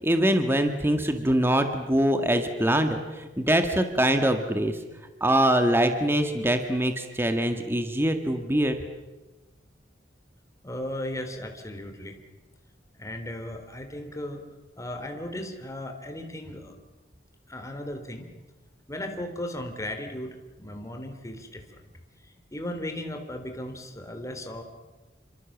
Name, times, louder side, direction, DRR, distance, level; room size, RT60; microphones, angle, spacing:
voice 1, 0.0-4.8 5.2-8.8, right 1 dB, 15° right, 6 dB, 1.9 m, -23 dB
voice 2, 10.6-12.2 12.9-14.4 14.8-16.7 17.5-18.3 18.9-20.3 20.6-21.8 22.5-24.6, left 1 dB, 15° left, 4 dB, 3.3 m, -36 dB
28.5 x 26.0 x 7.3 m, 1.1 s
head